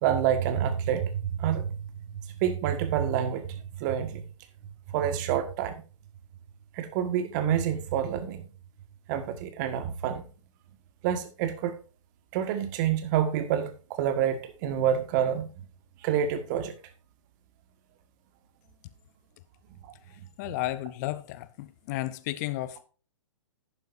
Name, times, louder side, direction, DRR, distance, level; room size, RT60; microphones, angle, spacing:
voice 1, 0.0-4.2 4.9-5.8 6.7-8.4 9.1-10.3 11.0-11.7 12.3-15.5 16.0-16.8, right 9 dB, 35° right, 1.7 m, -28 dB
voice 2, 20.4-22.8, left 16 dB, 30° left, 0.7 m, -33 dB
11.5 x 9.3 x 2.7 m
figure-of-eight pair, 125°, 17 cm